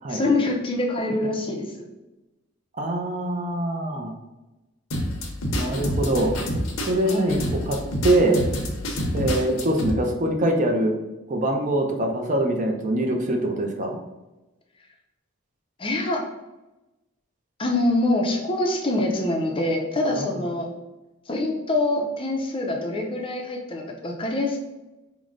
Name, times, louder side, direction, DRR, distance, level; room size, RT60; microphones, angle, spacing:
voice 1, 0.1-1.6 7.1-7.4 15.8-16.2 17.6-20.7 21.3-24.7, left 2 dB, 25° left, 1 dB, 0.5 m, -25 dB
voice 2, 2.8-4.1 5.5-6.4 6.8-7.4 7.7-7.8 8.0-8.4 9.1-10.9 11.3-14.0 20.1-20.4, right 1 dB, 35° right, 2 dB, 0.5 m, -23 dB
sound 1, 4.9-9.9, equal, 80° left, 0.7 m, -27 dB
4.7 x 2.1 x 3.7 m, 1.0 s
head